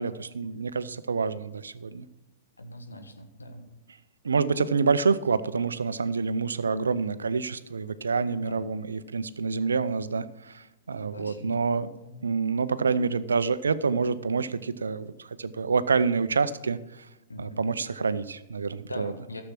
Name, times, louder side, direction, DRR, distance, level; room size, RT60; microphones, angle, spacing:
voice 1, 0.0-2.0 4.2-11.9 12.2-17.1 17.4-19.1, right 5 dB, 80° right, 15 dB, 0.6 m, -27 dB
voice 2, 2.6-3.7 8.2-8.6 11.1-11.6 12.0-12.2 17.3-17.8 18.9-19.4, left 1 dB, 90° left, 5 dB, 1.5 m, -41 dB
13.0 x 7.2 x 5.9 m, 1.0 s
figure-of-eight pair, 105°, 0 cm